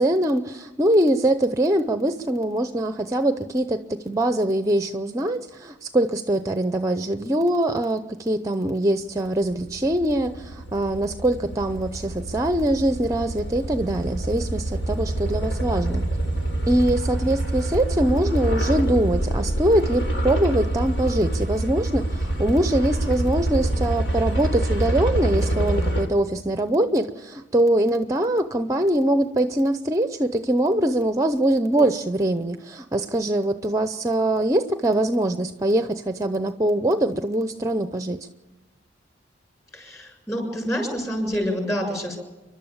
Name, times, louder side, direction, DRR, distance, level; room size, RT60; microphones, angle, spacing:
voice 1, 0.0-16.1 16.7-38.3, right 1 dB, 15° right, 10 dB, 0.7 m, -23 dB
sound 1, 9.3-26.1, right 1 dB, 70° left, 3.5 m, -26 dB
voice 2, 39.7-42.2, equal, 15° left, 2 dB, 6.7 m, -27 dB
30.0 x 12.0 x 7.3 m, 1.2 s
head